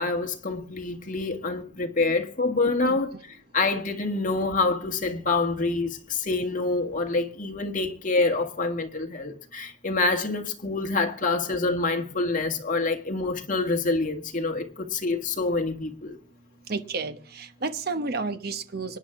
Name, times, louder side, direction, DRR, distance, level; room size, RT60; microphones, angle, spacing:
voice 1, 0.0-16.2, left 3 dB, 45° left, 1.8 m, -26 dB
voice 2, 16.7-19.0, right 3 dB, 55° right, 1.0 m, -31 dB
25.0 x 9.8 x 3.6 m
head